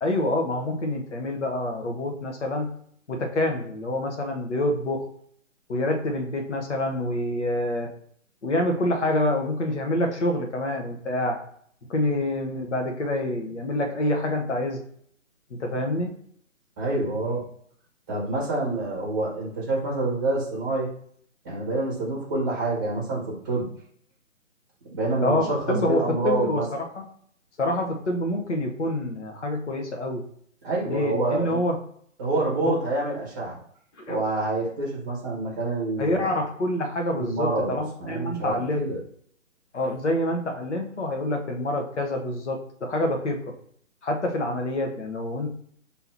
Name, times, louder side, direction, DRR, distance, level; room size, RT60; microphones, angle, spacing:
voice 1, 0.0-2.7 3.1-5.1 5.7-7.9 8.4-11.4 11.9-14.8 15.5-16.1 25.2-27.0 27.6-30.2 30.8-31.8 32.6-32.8 34.0-34.2 36.0-38.8 39.7-43.4 44.0-45.5, left 1 dB, 60° left, 3 dB, 1.1 m, -27 dB
voice 2, 16.8-17.4 18.1-20.9 21.4-23.7 24.9-26.6 30.6-31.6 32.2-33.6 34.1-36.4 37.1-39.0, right 2 dB, 15° right, -4 dB, 0.9 m, -27 dB
3.6 x 2.8 x 4.4 m, 0.64 s
hypercardioid pair, 155°, 40 cm